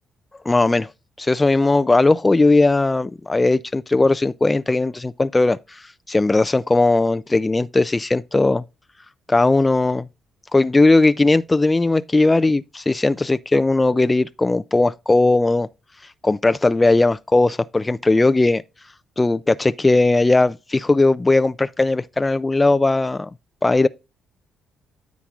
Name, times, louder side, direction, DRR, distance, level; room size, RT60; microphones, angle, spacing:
voice 1, 0.5-0.9 1.2-5.8 6.1-8.6 9.3-10.1 10.5-15.7 16.2-18.6 19.2-23.3 23.6-23.9, left 2 dB, 20° left, 0.4 m, -18 dB
10.0 x 7.1 x 2.4 m
cardioid pair, 90°, 0 cm